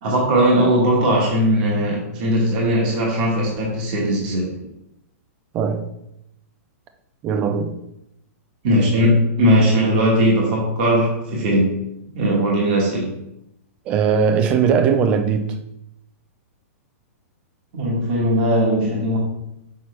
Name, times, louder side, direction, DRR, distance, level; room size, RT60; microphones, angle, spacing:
voice 1, 0.0-4.6 8.6-11.8 12.1-13.2 17.7-19.2, equal, 35° right, 1.2 m, -19 dB
voice 2, 5.5-5.9 7.2-7.8 13.9-15.6, right 6 dB, 15° right, 0.4 m, -19 dB
5.9 x 5.7 x 3.2 m
hypercardioid pair, 180°, 8 cm